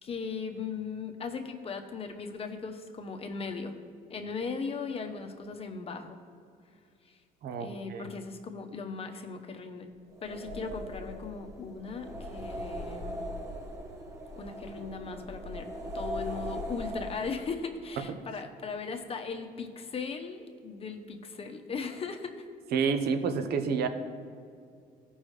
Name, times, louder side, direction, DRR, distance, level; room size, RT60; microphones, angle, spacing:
voice 1, 0.0-3.8 4.1-6.2 7.0-7.2 7.6-9.9 10.2-13.2 14.3-22.5, left 5 dB, 35° left, 5 dB, 0.9 m, -38 dB
voice 2, 7.4-8.0 22.7-23.9, right 5 dB, 70° right, 8 dB, 0.8 m, -29 dB
sound 1, 10.1-17.7, equal, 15° right, 1.0 m, -39 dB
15.0 x 5.4 x 3.3 m, 2.3 s
cardioid pair, 110°, 17 cm